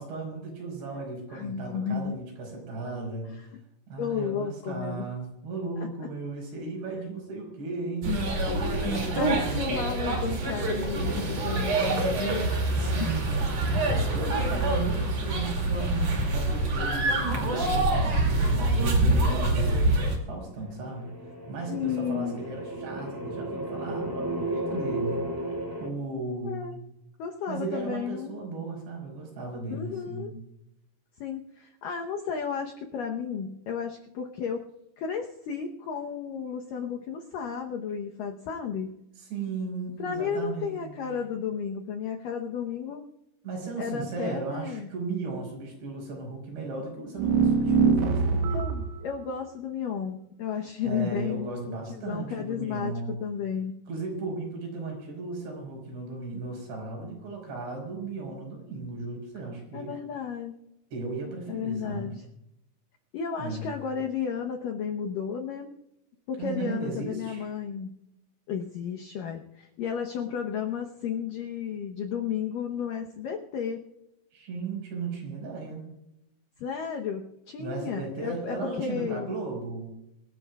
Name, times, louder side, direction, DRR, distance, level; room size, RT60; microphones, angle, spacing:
voice 1, 0.0-3.3 3.9-8.2 8.7-10.0 12.8-13.8 14.1-19.8 20.3-25.3 25.8-26.8 27.5-30.4 39.2-41.0 43.4-48.5 50.8-53.2 53.9-59.9 60.9-62.1 63.4-63.7 66.4-67.5 74.3-75.8 77.6-79.9, right 3 dB, 65° right, 1 dB, 7.2 m, -36 dB
voice 2, 1.3-2.2 4.0-5.1 5.8-5.9 8.5-12.6 13.0-13.2 13.7-14.0 14.4-14.7 21.7-22.4 26.4-26.8 27.2-28.4 29.7-30.3 31.2-34.7 35.0-38.9 40.0-43.0 43.8-44.9 48.5-52.9 53.2-53.8 59.7-60.5 61.5-62.2 63.1-65.7 66.3-68.0 68.5-73.8 76.6-79.4, left 7 dB, 85° left, 2 dB, 1.9 m, -33 dB
sound 1, 8.0-20.2, right 2 dB, 40° right, 3.1 m, -26 dB
sound 2, 20.8-25.9, right 1 dB, 5° right, 1.8 m, -34 dB
sound 3, 47.2-49.0, right 5 dB, 80° right, 3.6 m, -23 dB
24.0 x 14.5 x 2.4 m, 0.83 s
omnidirectional pair, 5.4 m